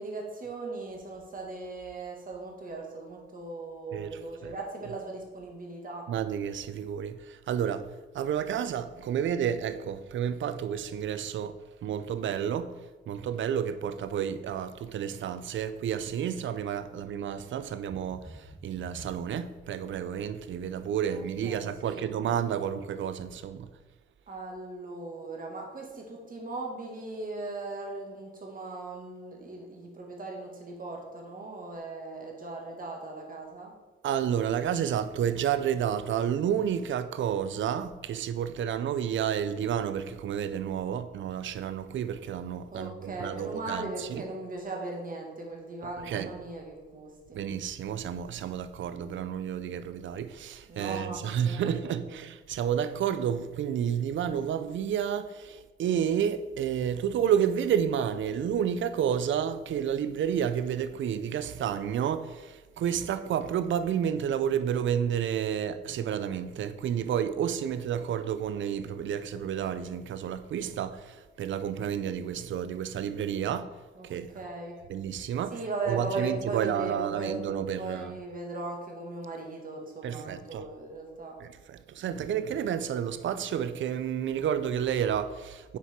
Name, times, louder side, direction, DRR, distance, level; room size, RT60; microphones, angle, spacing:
voice 1, 0.0-6.1 21.1-22.1 24.3-33.7 42.7-47.4 50.7-52.1 74.0-74.1 74.3-74.7 75.5-77.3 77.8-81.4 82.1-82.3, right 3 dB, 40° right, 1.9 m, -38 dB
voice 2, 3.9-4.5 6.1-12.7 13.1-23.7 34.0-44.2 45.8-46.3 47.3-73.7 74.0-74.3 74.9-75.5 75.9-78.2 80.0-80.7 81.4-85.8, right 9 dB, 65° right, 0.5 m, -30 dB
sound 1, 17.9-19.8 20.3-20.7 21.1-21.2, right 1 dB, 10° right, 0.8 m, -49 dB
6.8 x 4.7 x 4.4 m
cardioid pair, 80°, 21 cm